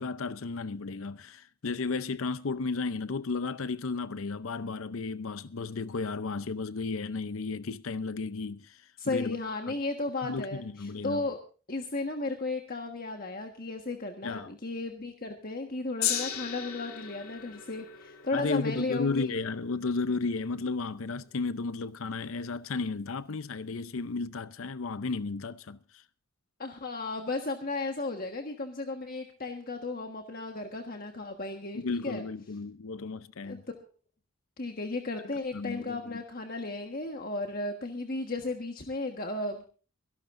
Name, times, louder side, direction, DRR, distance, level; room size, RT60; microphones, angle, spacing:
voice 1, 0.0-9.4 9.7-9.8 10.2-11.2 14.2-14.5 18.3-26.0 31.7-33.6 35.5-36.2, left 4 dB, 70° left, 0.6 m, -34 dB
voice 2, 9.0-11.4 11.7-19.4 26.6-32.2 33.4-33.6 34.6-39.6, left 2 dB, 40° left, 1.4 m, -34 dB
Gong, 16.0-22.4 23.2-23.3, left 10 dB, 90° left, 2.2 m, -38 dB
24.5 x 12.0 x 2.6 m
head